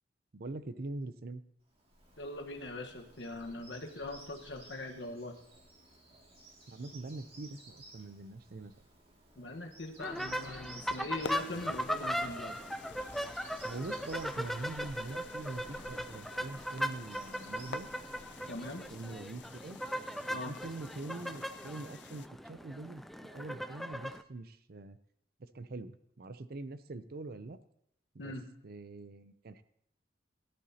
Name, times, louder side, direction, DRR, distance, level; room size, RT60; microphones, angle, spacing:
voice 1, 0.3-1.4 6.7-8.9 11.5-11.7 13.6-17.9 18.9-19.8 20.3-25.0 25.4-27.6 28.1-28.3 28.6-29.6, right 2 dB, 55° right, 13 dB, 0.6 m, -44 dB
Bird vocalization bird call bird song, 1.7-19.7, right 2 dB, 35° right, 2.4 m, -57 dB
voice 2, 2.2-5.3 9.3-12.6 18.5-18.9 20.3-20.5 28.2-28.4, left 2 dB, 90° left, 3 dB, 1.3 m, -41 dB
sound 1, 10.0-24.2, equal, ahead, 0.4 m, -39 dB
sound 2, 11.2-22.3, left 6 dB, 70° left, 0.5 m, -51 dB
17.5 x 11.5 x 2.8 m, 0.76 s
head